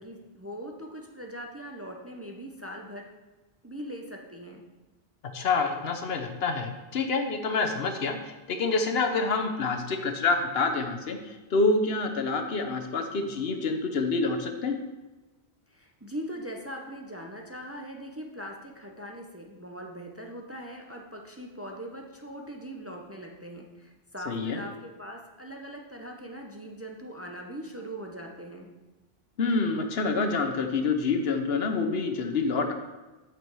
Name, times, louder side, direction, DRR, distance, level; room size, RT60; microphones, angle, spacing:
voice 1, 0.0-3.1 3.6-4.6 15.7-28.7, equal, 15° right, 1 dB, 0.7 m, -41 dB
voice 2, 5.3-14.8 24.3-24.6 29.4-32.7, left 3 dB, 75° left, 6 dB, 1.1 m, -27 dB
8.4 x 6.1 x 4.7 m, 1.1 s
omnidirectional pair, 1.0 m